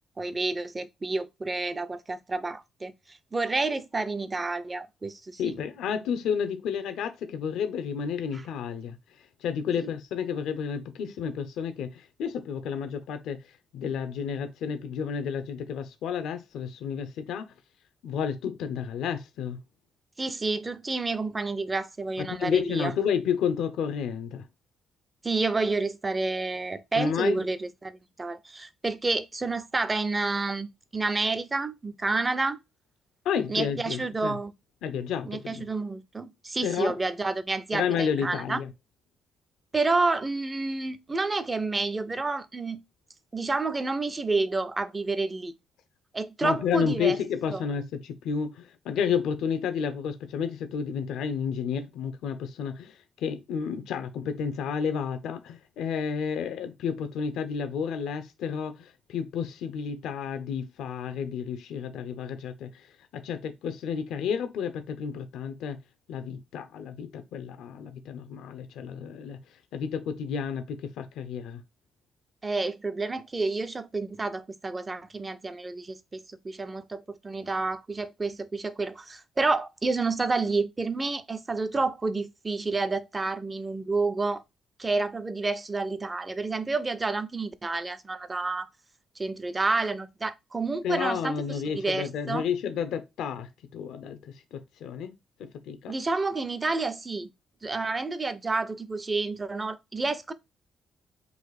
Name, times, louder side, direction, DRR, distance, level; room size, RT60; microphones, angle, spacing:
voice 1, 0.2-5.6 8.3-8.4 9.8-9.9 20.2-22.9 25.2-32.6 33.5-34.5 35.2-38.6 39.7-42.8 43.3-45.5 46.1-47.2 47.5-47.6 72.4-84.4 84.8-88.7 89.2-92.5 95.9-97.3 97.6-100.3, right 3 dB, 25° right, 0.6 m, -29 dB
voice 2, 5.4-9.0 9.4-13.4 13.7-17.5 18.0-19.6 22.2-24.4 27.0-27.4 33.2-34.4 34.8-35.6 36.6-36.9 37.7-38.7 46.4-62.7 63.1-65.8 66.1-69.4 69.7-71.6 90.8-95.1 95.4-95.9, left 7 dB, 85° left, 0.7 m, -31 dB
4.0 x 2.6 x 4.8 m
cardioid pair, 90°, 0 cm